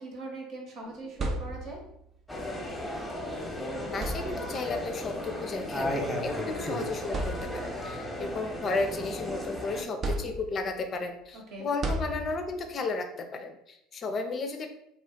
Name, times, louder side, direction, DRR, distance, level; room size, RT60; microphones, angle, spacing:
voice 1, 0.0-1.8 11.3-11.7, right 2 dB, 55° right, 0 dB, 1.0 m, -41 dB
sound 1, 0.9-2.0 3.3-3.4 3.9-4.8 5.9-6.0 6.6-6.7 7.1-7.9 8.4-9.4 10.0-10.8 11.8-12.7, right 1 dB, 40° right, 0.5 m, -34 dB
sound 2, 2.3-9.8, left 1 dB, 5° left, 0.8 m, -35 dB
voice 2, 3.8-14.7, left 3 dB, 40° left, 6 dB, 0.4 m, -34 dB
2.3 x 2.1 x 3.5 m, 0.78 s
hypercardioid pair, 75°, 0 cm